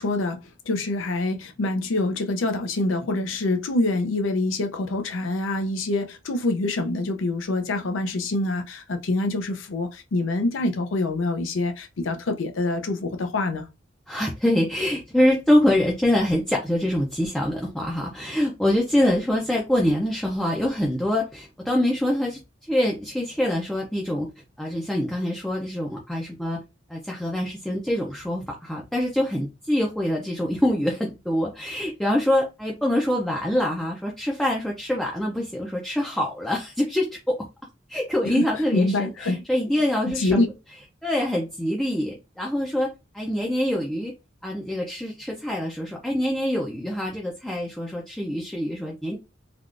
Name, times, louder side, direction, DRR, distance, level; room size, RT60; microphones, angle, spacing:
voice 1, 0.0-13.7 38.2-38.5 38.7-39.4 40.0-40.5, left 2 dB, 80° left, 0.5 m, -25 dB
voice 2, 14.1-24.3 24.6-26.6 26.9-37.5 37.9-40.5 41.0-44.1 44.4-49.2, left 1 dB, 5° left, 0.4 m, -25 dB
3.4 x 2.3 x 2.4 m
head